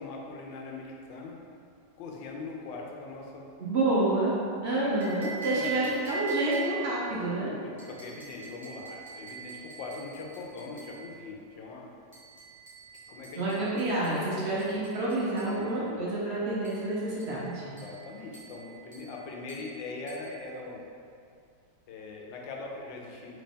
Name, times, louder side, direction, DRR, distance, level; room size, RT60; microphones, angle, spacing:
voice 1, 0.0-1.4 2.0-3.5 4.8-5.9 7.1-11.9 13.1-13.7 15.4-16.0 17.3-17.4 17.8-20.8 21.9-23.4, left 3 dB, 85° left, 0 dB, 1.3 m, -41 dB
voice 2, 3.6-4.3 4.6-7.5 13.3-17.7, right 2 dB, 55° right, -7 dB, 0.7 m, -28 dB
sound 1, 5.0-7.0 7.8-11.0 12.1-15.6 16.6-16.9 17.2-17.4 17.8-18.0 18.3-18.6 18.9-19.1 19.5-19.7 20.1-20.3, right 7 dB, 15° right, 0.8 m, -41 dB
4.0 x 3.4 x 3.6 m, 2.3 s
omnidirectional pair, 2.0 m